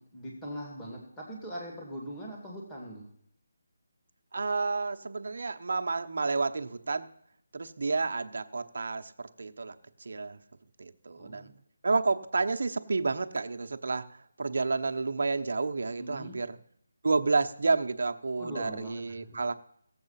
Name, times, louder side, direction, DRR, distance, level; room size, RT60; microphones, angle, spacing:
voice 1, 0.0-3.1 11.2-11.5 16.0-16.4 18.4-19.4, equal, 10° left, -4 dB, 2.2 m, -41 dB
voice 2, 4.3-7.1 7.5-9.7 10.1-10.4 10.8-11.5 11.8-14.1 14.4-16.6 17.0-19.5, right 3 dB, 65° right, 7 dB, 0.9 m, -30 dB
17.5 x 7.7 x 5.7 m, 0.70 s
figure-of-eight pair, 170°, 0 cm